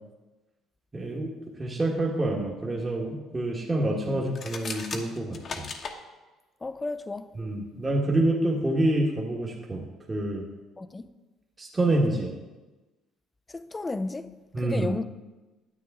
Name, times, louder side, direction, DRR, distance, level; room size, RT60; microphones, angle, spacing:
voice 1, 0.9-1.3 1.6-5.7 7.4-9.8 10.1-10.4 11.6-12.3 14.5-15.0, right 1 dB, 20° right, 1.3 m, -27 dB
sound 1, 4.3-6.0, left 4 dB, 45° left, 1.0 m, -36 dB
voice 2, 6.6-7.3 10.8-11.1 13.5-14.3 14.6-15.0, left 3 dB, 20° left, 0.5 m, -33 dB
9.6 x 8.5 x 3.6 m
cardioid pair, 100°, 0 cm